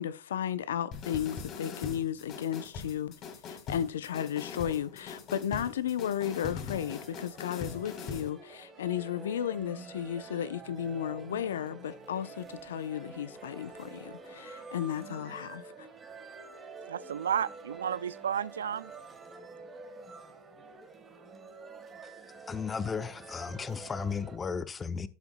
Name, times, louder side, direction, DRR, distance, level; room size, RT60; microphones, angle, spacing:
voice 1, 0.0-3.1 3.5-15.9, left 9 dB, 80° left, 0.7 m, -34 dB
sound 1, 0.9-8.3, left 6 dB, 40° left, 1.9 m, -41 dB
sound 2, 6.7-24.4, right 4 dB, 20° right, 1.5 m, -48 dB
voice 2, 16.9-18.9, right 8 dB, 90° right, 0.3 m, -32 dB
voice 3, 22.5-25.1, left 5 dB, 20° left, 0.7 m, -34 dB
13.5 x 7.0 x 2.3 m
hypercardioid pair, 110°, 0 cm